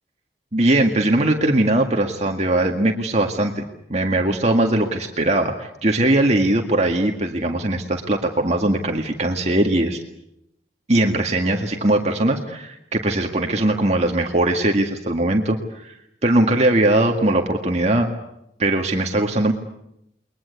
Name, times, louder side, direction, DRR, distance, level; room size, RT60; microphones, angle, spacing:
voice 1, 0.5-3.6 3.9-10.0 10.9-16.0 16.2-18.1 18.6-19.5, right 1 dB, 40° right, 3 dB, 2.0 m, -20 dB
30.0 x 22.0 x 8.2 m, 0.82 s
head